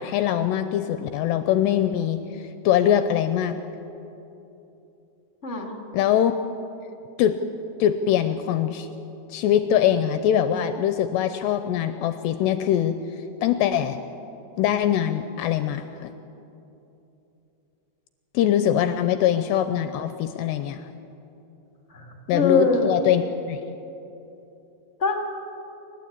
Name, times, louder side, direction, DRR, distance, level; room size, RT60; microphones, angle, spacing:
voice 1, 0.0-3.6 5.9-6.3 7.2-7.4 7.8-8.9 9.3-13.0 13.4-14.0 14.6-16.1 18.3-20.8 22.3-23.6, left 10 dB, 80° left, 10 dB, 2.6 m, -22 dB
voice 2, 21.9-22.9 25.0-25.3, left 3 dB, 50° left, 1 dB, 0.7 m, -23 dB
29.0 x 12.0 x 8.6 m, 3.0 s
omnidirectional pair, 5.3 m